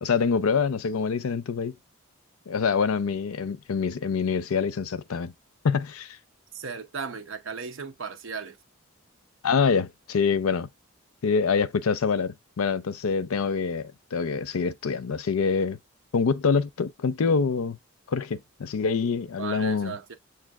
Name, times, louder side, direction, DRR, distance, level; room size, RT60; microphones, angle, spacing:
voice 1, 0.0-1.7 2.5-5.3 5.6-6.2 9.4-10.7 11.2-15.8 16.1-17.8 18.1-19.9, left 5 dB, 90° left, 0.5 m, -25 dB
voice 2, 6.5-8.6 19.4-20.1, right 5 dB, 65° right, 0.7 m, -36 dB
7.2 x 2.6 x 2.4 m
head